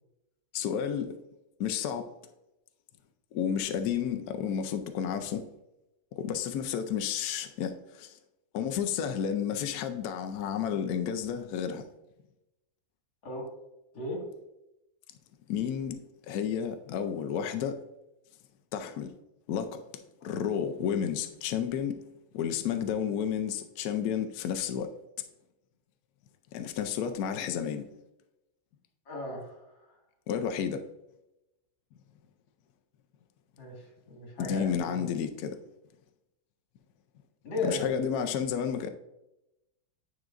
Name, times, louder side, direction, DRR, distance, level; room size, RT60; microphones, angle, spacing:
voice 1, 0.5-1.1 1.6-2.1 3.3-5.4 6.1-8.2 8.5-11.9 15.5-16.0 16.3-17.8 18.7-19.1 19.5-19.8 20.2-22.0 22.3-24.9 26.5-27.9 30.3-30.8 34.4-35.6 37.6-38.9, left 8 dB, 85° left, 0.8 m, -31 dB
voice 2, 29.1-29.9 33.6-35.0 37.4-37.8, left 2 dB, 60° left, 2.6 m, -36 dB
9.5 x 4.9 x 2.5 m
omnidirectional pair, 2.3 m